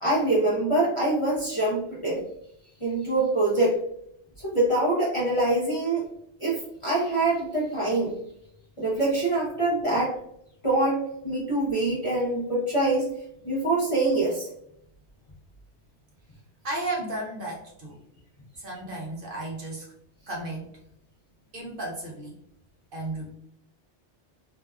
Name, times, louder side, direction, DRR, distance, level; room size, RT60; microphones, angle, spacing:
voice 1, 0.0-2.2 2.8-3.8 4.4-6.0 6.4-8.2 8.8-10.2 10.6-13.1 13.4-14.5, right 2 dB, 35° left, -7 dB, 0.6 m, -24 dB
voice 2, 16.6-18.0 18.6-19.9 20.3-20.7 21.5-22.3 22.9-23.3, right 2 dB, 55° right, -2 dB, 0.8 m, -34 dB
2.7 x 2.2 x 2.2 m, 0.74 s
omnidirectional pair, 1.2 m